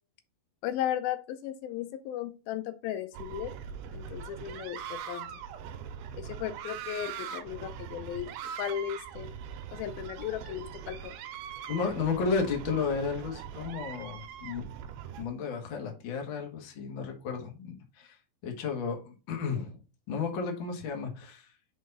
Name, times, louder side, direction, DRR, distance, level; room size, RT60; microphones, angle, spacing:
voice 1, 0.6-3.5 3.9-5.3 6.2-8.3 8.6-9.3 9.7-11.1, left 11 dB, 80° left, 10 dB, 2.4 m, -35 dB
sound 1, 3.1-15.3, right 8 dB, 85° right, 2.6 m, -41 dB
voice 2, 11.7-14.6 15.2-19.8 20.1-21.5, left 5 dB, 50° left, 2 dB, 1.5 m, -33 dB
5.6 x 4.7 x 4.0 m, 0.32 s
omnidirectional pair, 4.3 m